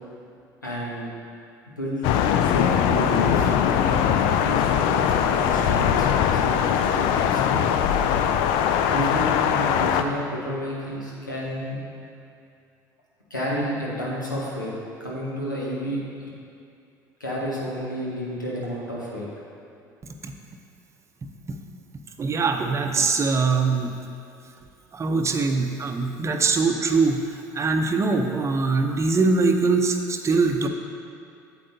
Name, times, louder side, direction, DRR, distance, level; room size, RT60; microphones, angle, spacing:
voice 1, 0.6-1.1 1.8-2.0 2.4-7.6 8.8-11.8 13.3-14.7 15.0-16.0 17.2-19.3, equal, 90° left, -5 dB, 1.2 m, -31 dB
Thunder, 2.0-10.0, left 8 dB, 60° left, 0.4 m, -21 dB
voice 2, 22.2-24.0 24.9-27.3 27.5-30.7, right 4 dB, 30° right, 5 dB, 0.7 m, -22 dB
8.6 x 7.8 x 2.7 m, 2.5 s
figure-of-eight pair, 60°, 10 cm